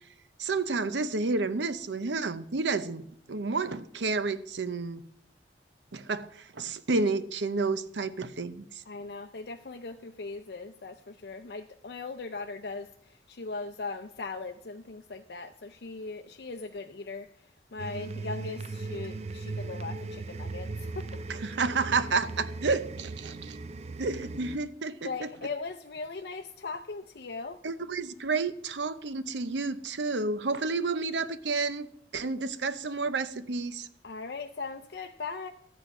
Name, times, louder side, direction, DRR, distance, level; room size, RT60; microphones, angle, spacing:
voice 1, 0.4-5.0 5.9-8.8 21.3-23.6 24.0-25.3 27.6-31.9 32.1-33.9, right 4 dB, 85° right, 13 dB, 0.7 m, -30 dB
voice 2, 8.9-21.2 25.0-27.6 34.0-35.5, left 4 dB, 65° left, 6 dB, 0.6 m, -39 dB
sound 1, 17.8-24.6, right 3 dB, 35° right, 0.4 m, -38 dB
14.0 x 8.5 x 5.4 m, 0.70 s
head